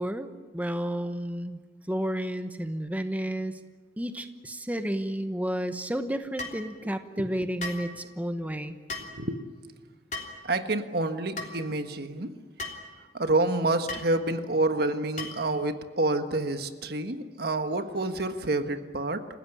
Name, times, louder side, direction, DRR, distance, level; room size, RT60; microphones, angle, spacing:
voice 1, 0.0-1.6 1.9-3.6 4.0-8.8, equal, 10° right, 8 dB, 1.0 m, -31 dB
sound 1, 6.4-6.6 7.6-7.9 8.9-9.1 10.1-10.4 11.4-11.5 12.6-12.8 13.9-14.1 15.2-15.5, left 2 dB, 45° left, 3.2 m, -36 dB
voice 2, 7.2-7.5 9.1-9.4 10.4-12.3 13.1-19.3, right 2 dB, 60° right, 8 dB, 1.5 m, -28 dB
28.5 x 16.0 x 10.0 m, 1.5 s
head